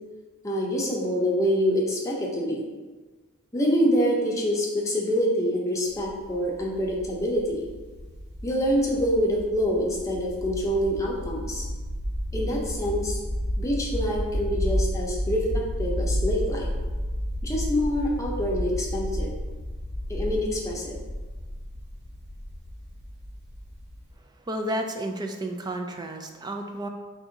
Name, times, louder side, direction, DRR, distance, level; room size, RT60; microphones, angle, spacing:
voice 1, 0.4-2.6 3.5-7.6 8.4-11.6 12.3-13.2 13.6-16.7 17.4-19.3 20.1-21.0, equal, 15° left, -3 dB, 0.7 m, -26 dB
sound 1, 5.9-24.1, equal, 55° right, 1.4 m, -32 dB
voice 2, 24.5-26.9, right 1 dB, 20° right, 5 dB, 0.3 m, -31 dB
4.7 x 2.6 x 3.9 m, 1.3 s
head